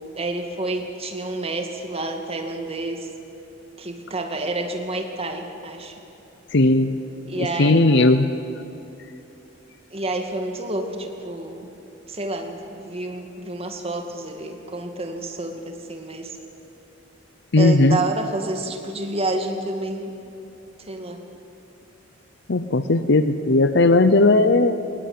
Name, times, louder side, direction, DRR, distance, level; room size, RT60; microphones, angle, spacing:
voice 1, 0.0-3.1 3.8-6.0 7.3-8.1 9.9-11.7 12.1-16.4 17.6-20.1 20.8-21.2, right 2 dB, 30° right, 4 dB, 2.4 m, -29 dB
voice 2, 6.5-6.9 7.4-8.3 17.5-18.0 22.5-24.7, left 2 dB, 65° left, 11 dB, 0.8 m, -17 dB
21.0 x 19.0 x 9.6 m, 2.8 s
head